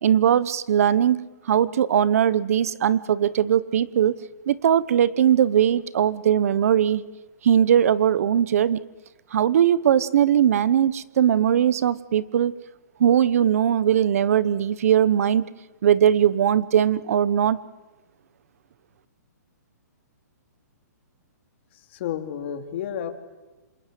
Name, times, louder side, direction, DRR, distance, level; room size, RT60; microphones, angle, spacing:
voice 1, 0.0-4.2 4.5-7.0 7.4-8.8 9.3-12.5 13.0-15.4 15.8-17.6, right 9 dB, 55° right, 18 dB, 1.0 m, -20 dB
voice 2, 21.7-23.1, left 9 dB, 40° left, 6 dB, 2.8 m, -31 dB
28.5 x 27.0 x 7.6 m, 1.2 s
hypercardioid pair, 165°, 10 cm